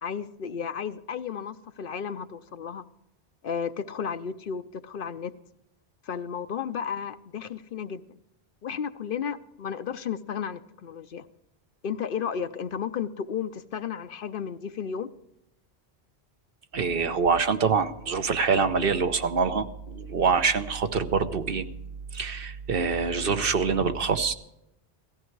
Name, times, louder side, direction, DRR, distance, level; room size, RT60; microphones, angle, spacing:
voice 1, 0.0-2.9 3.4-5.3 6.0-8.2 8.6-11.3 11.8-15.1, left 7 dB, 60° left, 12 dB, 0.8 m, -33 dB
voice 2, 16.7-21.6 22.1-24.3, right 5 dB, 60° right, 9 dB, 1.1 m, -25 dB
17.5 x 14.5 x 4.6 m, 0.86 s
omnidirectional pair, 1.1 m